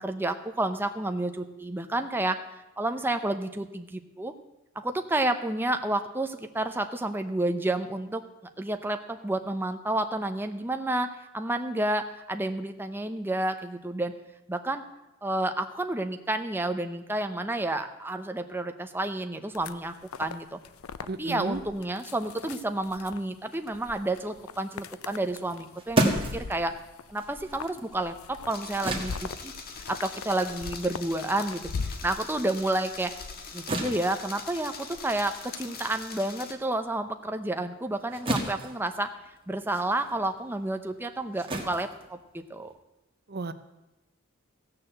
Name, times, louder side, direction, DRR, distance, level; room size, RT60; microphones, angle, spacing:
voice 1, 0.0-2.4 2.8-4.3 4.8-8.2 8.6-14.1 14.5-14.8 15.2-20.6 21.2-26.8 27.1-29.5 29.9-31.7 32.0-33.1 33.5-39.1 39.5-42.7, right 2 dB, 10° right, 6 dB, 0.7 m, -30 dB
sound 1, 19.5-35.7, left 5 dB, 90° left, 0.6 m, -41 dB
voice 2, 21.1-21.6 43.3-43.5, right 3 dB, 50° right, 12 dB, 0.7 m, -33 dB
sound 2, 25.4-32.2 32.6-42.8, right 1 dB, 25° right, 1.6 m, -35 dB
sound 3, 28.5-36.5, left 5 dB, 45° left, 1.5 m, -43 dB
15.5 x 6.8 x 7.6 m, 0.96 s
head